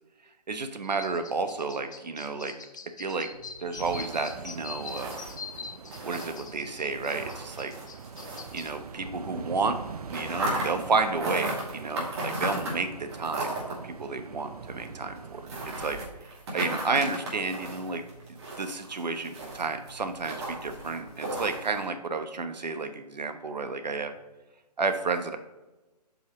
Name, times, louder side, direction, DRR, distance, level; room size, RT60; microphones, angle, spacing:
voice 1, 0.5-2.5 3.0-3.3 3.6-5.2 6.0-7.7 8.5-9.8 10.1-13.5 13.8-15.4 15.8-16.0 16.5-18.0 18.3-24.1 24.8-25.4, right 4 dB, 80° right, 8 dB, 1.1 m, -31 dB
sound 1, 0.8-8.7, left 5 dB, 30° left, 0.4 m, -43 dB
sound 2, 3.3-9.3 9.6-21.9, right 1 dB, 40° right, 2.4 m, -37 dB
sound 3, 3.8-15.9, right 6 dB, 65° right, 0.6 m, -43 dB
7.9 x 5.5 x 3.0 m, 1.1 s
hypercardioid pair, 165°, 21 cm